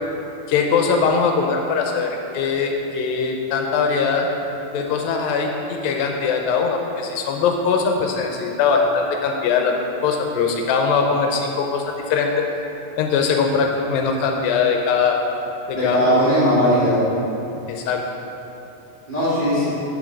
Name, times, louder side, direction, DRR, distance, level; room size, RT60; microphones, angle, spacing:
voice 1, 0.5-4.3 4.7-12.4 13.0-15.2 15.7-16.3 17.7-18.0, left 5 dB, 80° left, 2 dB, 2.4 m, -21 dB
voice 2, 15.7-17.0 19.1-19.7, equal, 20° right, -10 dB, 1.6 m, -18 dB
7.5 x 7.2 x 5.1 m, 3.0 s
omnidirectional pair, 4.2 m